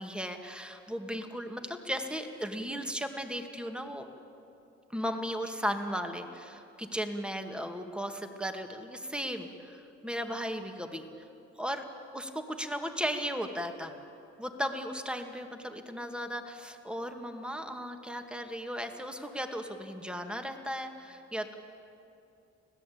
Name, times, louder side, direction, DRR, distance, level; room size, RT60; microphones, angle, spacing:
voice 1, 0.0-4.1 4.9-11.1 11.6-11.8 12.1-13.9 14.4-21.5, equal, 5° right, 5 dB, 2.1 m, -36 dB
25.5 x 16.5 x 8.7 m, 2.7 s
cardioid pair, 90°, 30 cm